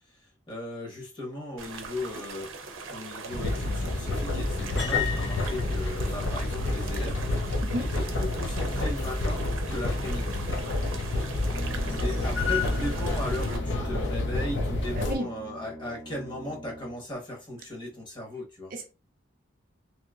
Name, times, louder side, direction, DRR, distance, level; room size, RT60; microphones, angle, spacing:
voice 1, 0.2-2.5 2.9-10.4 11.9-18.7, left 1 dB, 25° left, 1.0 m, -37 dB
sound 1, 1.6-13.6, right 4 dB, 90° right, 0.6 m, -41 dB
sound 2, 3.3-15.2, left 2 dB, 65° left, 0.7 m, -29 dB
Brass instrument, 11.4-17.2, right 2 dB, 5° left, 0.7 m, -42 dB
voice 2, 14.9-15.3 18.7-18.9, right 1 dB, 45° right, 0.5 m, -31 dB
3.0 x 2.7 x 2.4 m
head